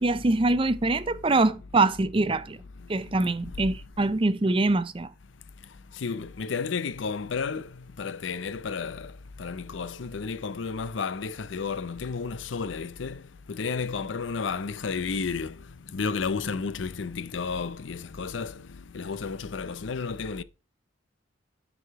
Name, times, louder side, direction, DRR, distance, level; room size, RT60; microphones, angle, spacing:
voice 1, 0.0-2.6 2.9-5.1, right 2 dB, 30° right, 0.5 m, -24 dB
voice 2, 6.0-7.7 8.0-9.1 9.4-13.2 13.5-15.6 15.9-18.5 18.9-20.4, left 5 dB, 80° left, 0.6 m, -32 dB
10.0 x 4.9 x 4.6 m
head